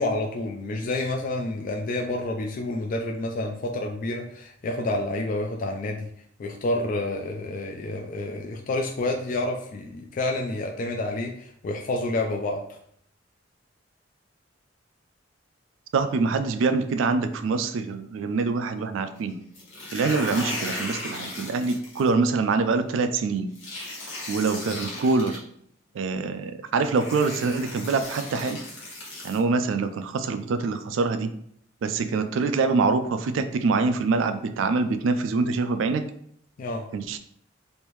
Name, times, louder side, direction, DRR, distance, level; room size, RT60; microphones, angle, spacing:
voice 1, 0.0-6.1 6.4-12.6 36.6-36.9, left 2 dB, 45° left, 2 dB, 0.3 m, -29 dB
voice 2, 15.9-19.4 19.9-23.5 24.3-25.4 26.0-28.6 29.2-31.3 31.8-36.1 36.9-37.2, right 4 dB, 90° right, 9 dB, 0.3 m, -25 dB
sound 1, 19.5-22.1 23.6-25.4 26.4-26.5 26.9-29.4, left 1 dB, 75° left, 1.4 m, -36 dB
3.3 x 2.6 x 3.1 m, 0.67 s
head